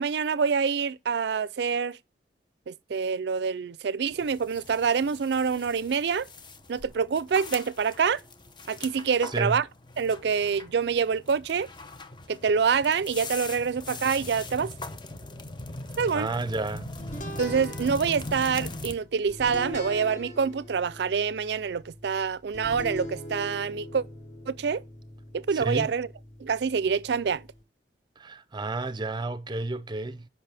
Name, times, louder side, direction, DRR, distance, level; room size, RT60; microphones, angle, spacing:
voice 1, 0.0-2.0 2.7-6.3 6.7-8.2 8.7-9.6 10.0-11.7 12.3-14.7 16.0-16.3 17.4-24.0 24.5-24.8 25.3-26.1 26.4-27.4, right 6 dB, 65° right, 0.4 m, -26 dB
sound 1, 4.1-18.9, left 2 dB, 25° left, 0.8 m, -41 dB
voice 2, 16.1-16.9 25.5-25.9 28.2-30.3, right 2 dB, 25° right, 0.6 m, -31 dB
sound 2, 17.0-27.6, left 1 dB, 45° left, 1.9 m, -42 dB
8.2 x 5.5 x 3.4 m
head